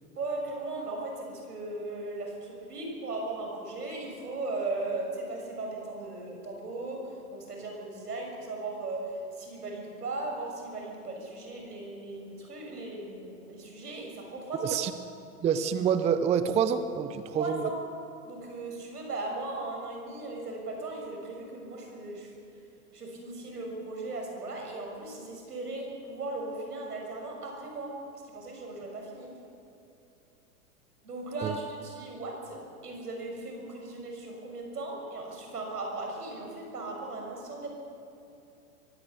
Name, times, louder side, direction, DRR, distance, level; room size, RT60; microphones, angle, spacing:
voice 1, 0.2-7.0 7.3-14.8 17.3-17.8 18.2-22.3 22.9-28.0 28.3-29.3 31.0-37.7, right 2 dB, 80° right, 1 dB, 6.6 m, -37 dB
voice 2, 14.6-14.9 15.4-17.7 31.4-31.5, right 7 dB, 15° right, 11 dB, 0.6 m, -27 dB
23.0 x 17.0 x 6.9 m, 2.8 s
hypercardioid pair, 105°, 46 cm